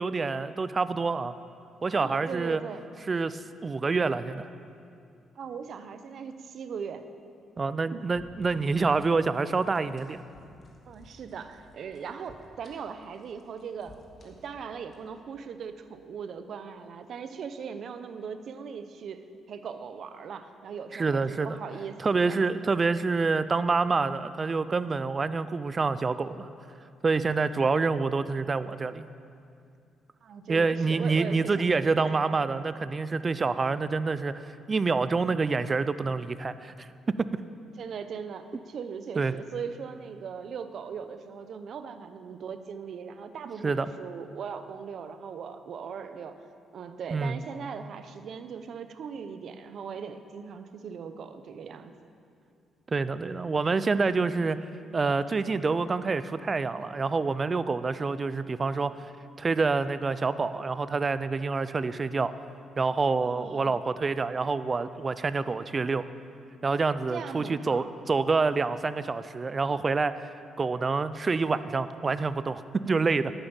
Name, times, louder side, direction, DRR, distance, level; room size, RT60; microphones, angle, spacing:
voice 1, 0.0-1.3 1.8-2.6 3.1-4.5 7.6-10.2 20.9-21.5 22.0-26.5 27.0-29.0 30.5-34.3 34.7-36.9 37.2-37.4 39.2-39.3 43.6-43.9 47.1-47.4 52.9-54.6 54.9-58.9 59.4-62.3 62.8-66.0 66.6-70.3 70.6-73.3, right 4 dB, 30° right, 14 dB, 0.5 m, -27 dB
voice 2, 1.9-2.9 5.3-7.1 7.9-8.0 10.9-14.0 14.2-22.4 30.2-32.2 37.8-46.4 46.7-51.9 63.2-63.8 67.1-67.9, right 6 dB, 60° right, 10 dB, 0.8 m, -39 dB
sound 1, 8.1-16.2, left 1 dB, 45° left, 2.1 m, -56 dB
11.0 x 9.0 x 7.0 m, 2.5 s
cardioid pair, 90°, 0 cm